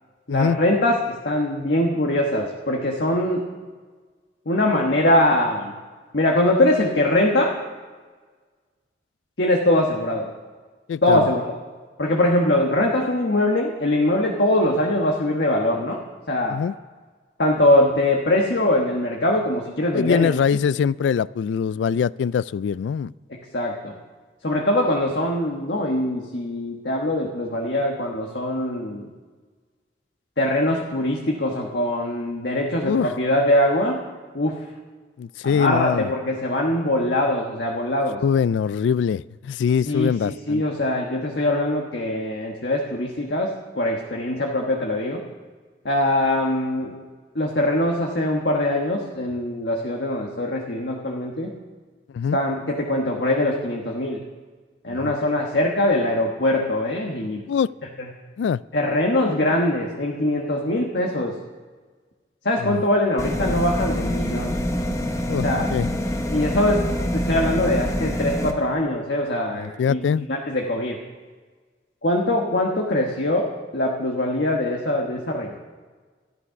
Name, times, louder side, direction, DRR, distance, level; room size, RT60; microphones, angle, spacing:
voice 1, 0.3-3.4 4.5-5.7 6.1-7.5 9.4-10.3 11.0-11.6 12.0-16.0 16.3-16.6 17.4-20.3 23.3-24.0 24.4-29.1 30.4-34.0 34.3-34.7 35.4-38.2 39.9-45.2 45.8-47.0 47.3-51.5 52.3-54.2 54.8-57.4 58.7-61.4 62.4-64.5 65.4-65.7 66.3-66.9 67.1-70.0 70.3-71.0 72.0-73.5 73.7-75.6, left 1 dB, 65° left, 0 dB, 1.3 m, -22 dB
voice 2, 10.9-11.3 16.5-16.7 19.9-23.1 32.8-33.1 35.2-36.1 38.2-40.6 52.1-52.4 54.9-55.1 57.5-57.7 58.4-58.6 62.6-62.8 65.3-65.9 69.6-70.3, left 7 dB, 85° left, 20 dB, 0.3 m, -23 dB
sound 1, 63.2-68.5, equal, 15° left, 1.0 m, -25 dB
13.0 x 11.0 x 5.8 m, 1.4 s
head